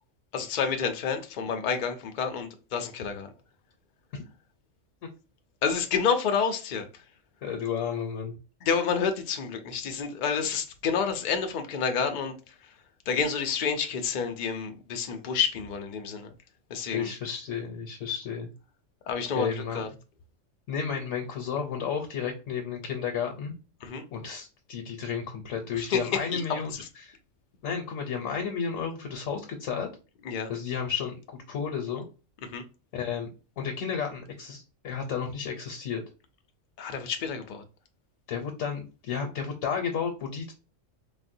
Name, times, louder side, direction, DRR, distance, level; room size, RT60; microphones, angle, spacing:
voice 1, 0.3-3.3 5.6-6.9 8.6-12.5 13.1-16.3 16.7-17.1 19.1-19.5 19.7-19.9 23.8-24.0 25.7-26.4 26.7-26.9 30.2-30.5 32.5-32.6 36.8-37.6, left 6 dB, 55° left, 0.5 m, -29 dB
voice 2, 7.4-8.4 16.9-18.5 19.4-19.8 20.7-23.5 24.1-26.7 27.0-27.1 27.6-29.9 30.5-32.0 32.9-33.3 33.6-36.0 38.3-40.5, left 7 dB, 80° left, 1.0 m, -32 dB
4.0 x 2.1 x 2.5 m
omnidirectional pair, 1.3 m